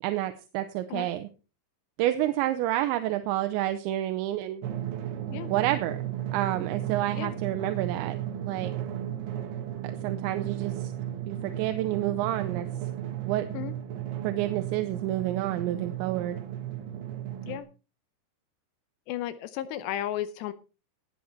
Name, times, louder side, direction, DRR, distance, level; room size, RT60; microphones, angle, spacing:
voice 1, 0.0-1.3 2.0-4.6 5.5-8.2 8.5-8.7 10.0-10.9 11.3-12.7 13.3-13.5 14.2-16.4, right 14 dB, 85° right, 9 dB, 3.1 m, -29 dB
Drum, 4.6-17.6, right 11 dB, 70° right, 3.4 m, -34 dB
voice 2, 19.1-20.5, left 12 dB, 80° left, 14 dB, 2.7 m, -34 dB
17.5 x 8.1 x 4.4 m, 0.33 s
omnidirectional pair, 5.2 m